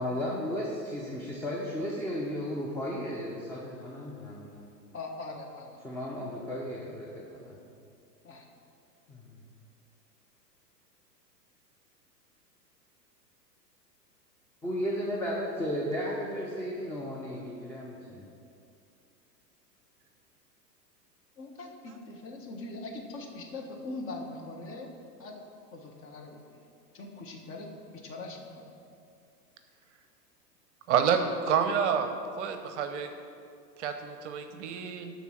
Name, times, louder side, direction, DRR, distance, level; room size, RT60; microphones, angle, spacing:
voice 1, 0.0-4.7 5.8-7.6 9.1-9.4 14.6-18.3, equal, 5° left, -4 dB, 0.7 m, -34 dB
voice 2, 4.9-5.8 8.2-8.5 21.4-24.9 25.2-25.3 25.7-26.6 26.9-27.7 28.0-28.7, left 2 dB, 25° left, 1 dB, 1.3 m, -42 dB
voice 3, 30.9-32.1 32.4-33.1 33.8-35.1, right 7 dB, 45° right, 7 dB, 0.8 m, -28 dB
12.5 x 4.2 x 6.3 m, 2.4 s
figure-of-eight pair, 105°, 49 cm